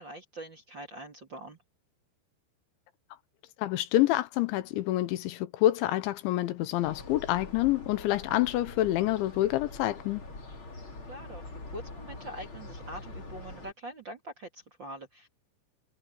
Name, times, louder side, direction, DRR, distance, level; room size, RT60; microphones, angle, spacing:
voice 1, 0.0-1.6 11.1-15.3, right 1 dB, 30° right, 2.3 m, -44 dB
voice 2, 3.6-10.2, left 15 dB, 80° left, 3.2 m, -27 dB
sound 1, 6.8-13.7, left 2 dB, 30° left, 4.4 m, -44 dB
omnidirectional pair, 5.4 m